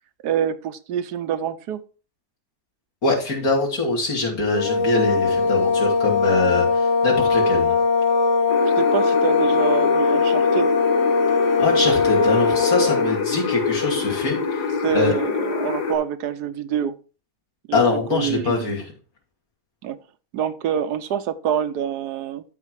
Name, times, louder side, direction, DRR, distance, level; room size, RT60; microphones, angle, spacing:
voice 1, 0.2-1.8 8.8-10.7 14.8-17.0 17.7-17.8 18.1-18.6 19.8-20.0 20.3-22.4, right 8 dB, 85° right, 1.3 m, -26 dB
voice 2, 3.0-7.7 11.6-14.7 14.9-15.1 17.7-18.9, left 3 dB, 65° left, 3.3 m, -23 dB
sound 1, 4.5-13.2, left 4 dB, 40° left, 0.7 m, -20 dB
sound 2, 8.5-16.0, left 5 dB, 90° left, 1.9 m, -26 dB
12.5 x 4.3 x 4.7 m
omnidirectional pair, 1.7 m